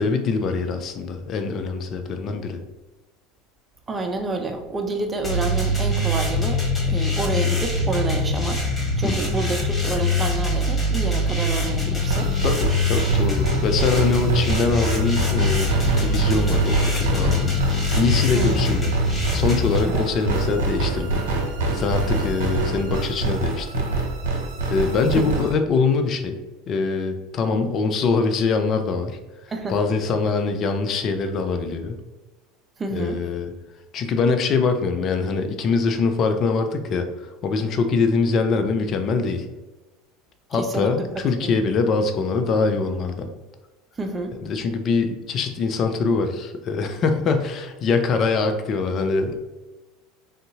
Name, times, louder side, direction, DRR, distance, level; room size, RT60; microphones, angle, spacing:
voice 1, 0.0-2.6 9.0-9.2 12.4-17.5 17.9-18.9 19.3-21.2 21.7-23.8 24.7-26.4 26.7-29.2 29.7-32.0 32.9-33.5 33.9-37.1 37.4-39.5 40.5-43.3 44.4-49.4, left 4 dB, 45° left, 6 dB, 0.4 m, -23 dB
voice 2, 3.9-6.6 6.9-12.3 18.3-18.6 19.8-20.0 25.2-25.5 29.5-29.8 32.8-33.2 40.5-40.9 41.4-41.5 44.0-44.4, right 3 dB, 25° right, 4 dB, 0.5 m, -28 dB
sound 1, 5.2-19.8, left 2 dB, 20° left, 1.1 m, -23 dB
sound 2, 12.0-25.5, right 3 dB, 75° right, 0.6 m, -25 dB
3.5 x 2.6 x 2.7 m, 1.1 s
hypercardioid pair, 75°, 0 cm